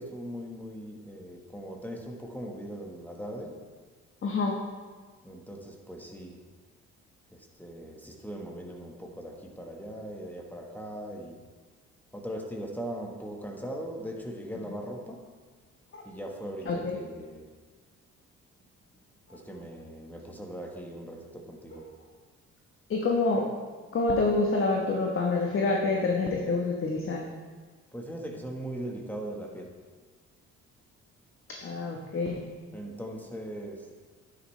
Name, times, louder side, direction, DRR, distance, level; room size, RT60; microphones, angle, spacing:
voice 1, 0.0-3.6 5.2-6.4 7.3-11.4 12.1-15.2 16.0-17.5 19.3-21.9 27.9-29.8 32.7-33.9, right 1 dB, 5° left, 0 dB, 1.4 m, -39 dB
voice 2, 4.2-4.6 15.9-16.0 16.7-17.0 22.9-23.5 23.9-27.2 31.6-32.4, left 3 dB, 45° left, 0 dB, 1.2 m, -27 dB
9.7 x 9.4 x 3.3 m, 1.4 s
cardioid pair, 90°, 30 cm